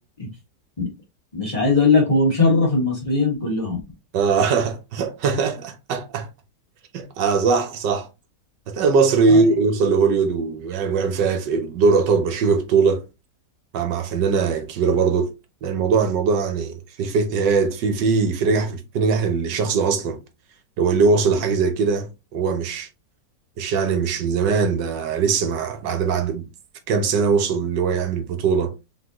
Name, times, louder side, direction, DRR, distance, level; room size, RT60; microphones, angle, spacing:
voice 1, 1.3-3.8 9.3-9.4, left 3 dB, 20° left, 1.6 m, -19 dB
voice 2, 4.1-6.3 6.9-8.1 8.7-13.0 13.7-15.3 15.6-20.2 20.8-22.9 23.6-26.5 26.9-28.7, right 5 dB, 75° right, 1.5 m, -21 dB
3.9 x 3.9 x 2.9 m
omnidirectional pair, 1.9 m